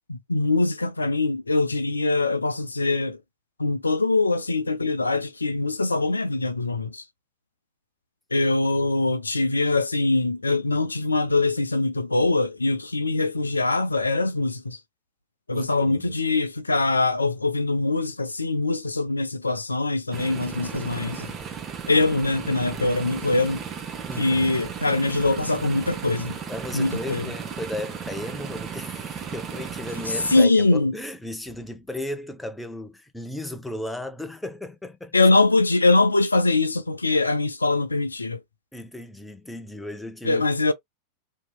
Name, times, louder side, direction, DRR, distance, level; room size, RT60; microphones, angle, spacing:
voice 1, 0.1-3.2 3.6-7.0 8.3-14.8 15.5-21.3 21.9-23.6 24.2-26.4 26.7-27.3 30.3-30.9 35.1-38.4 40.2-40.7, left 2 dB, 80° left, 0.4 m, -23 dB
voice 2, 15.5-16.2 24.1-24.6 26.5-35.1 38.7-40.7, left 1 dB, 5° left, 0.6 m, -35 dB
sound 1, 20.1-30.4, right 7 dB, 25° right, 0.8 m, -35 dB
2.8 x 2.7 x 2.3 m
figure-of-eight pair, 90°, 0 cm